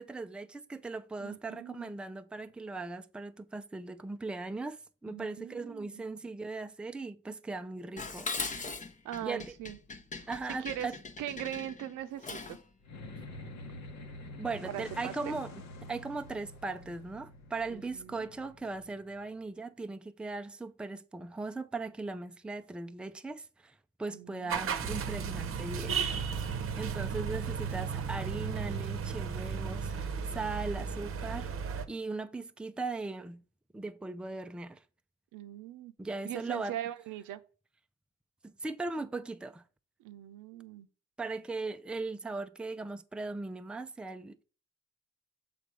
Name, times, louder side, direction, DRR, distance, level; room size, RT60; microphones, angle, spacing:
voice 1, 0.0-8.3 9.2-9.4 10.3-10.9 14.4-15.5 15.9-26.0 26.8-31.5 31.9-33.4 33.7-34.8 36.0-36.7 38.4-39.6 41.2-44.4, right 3 dB, 5° right, 0.4 m, -38 dB
voice 2, 1.2-2.0 5.1-6.1 9.0-9.8 10.1-10.3 10.6-10.9 11.2-12.6 14.6-15.4 17.7-18.2 24.1-24.8 35.3-35.9 36.2-37.4 40.0-40.9, right 12 dB, 90° right, 0.6 m, -41 dB
Dishes pots and pans, 8.0-12.7, left 4 dB, 25° left, 0.7 m, -40 dB
sound 1, 12.8-19.4, left 2 dB, 60° left, 1.2 m, -47 dB
sound 2, 24.5-31.8, right 6 dB, 45° right, 0.8 m, -34 dB
6.8 x 3.9 x 4.7 m
cardioid pair, 90°, 30 cm